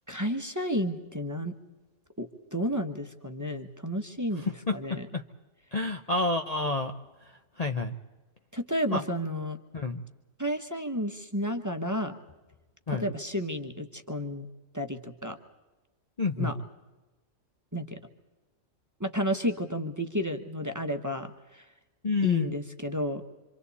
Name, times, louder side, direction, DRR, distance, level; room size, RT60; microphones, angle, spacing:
voice 1, 0.1-1.5 2.2-5.1 8.5-9.6 10.4-12.1 12.9-14.5 14.7-15.4 16.4-16.6 17.7-18.0 19.0-21.6 22.2-23.2, equal, 15° right, 5 dB, 1.1 m, -32 dB
voice 2, 4.4-5.2 5.7-6.9 7.3-7.9 8.9-9.0 9.7-10.0 12.9-13.1 16.2-16.5 22.0-22.5, left 3 dB, 35° left, 4 dB, 0.8 m, -29 dB
27.0 x 26.5 x 4.2 m, 1.1 s
omnidirectional pair, 1.4 m